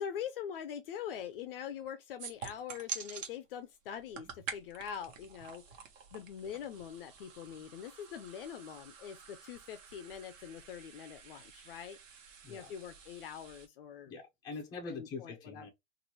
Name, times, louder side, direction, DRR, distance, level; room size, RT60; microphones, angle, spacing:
voice 1, 0.0-5.6 6.1-12.0 12.5-14.1 14.7-15.6, left 8 dB, 50° left, 0.5 m, -43 dB
sound 1, 2.2-3.3 3.9-13.7, right 6 dB, 80° right, 1.1 m, -48 dB
voice 2, 14.0-15.7, left 4 dB, 10° left, 0.6 m, -44 dB
3.0 x 2.6 x 4.0 m
supercardioid pair, 170°, 38 cm